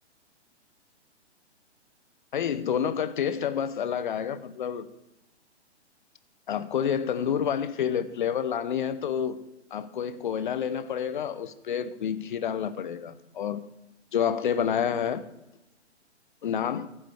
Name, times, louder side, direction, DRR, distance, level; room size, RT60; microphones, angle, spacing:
voice 1, 2.3-4.9 6.5-9.4 9.7-13.6 14.1-15.2 16.4-16.9, left 8 dB, 45° left, 13 dB, 0.9 m, -28 dB
15.0 x 7.6 x 4.9 m, 0.89 s
figure-of-eight pair, 125°, 34 cm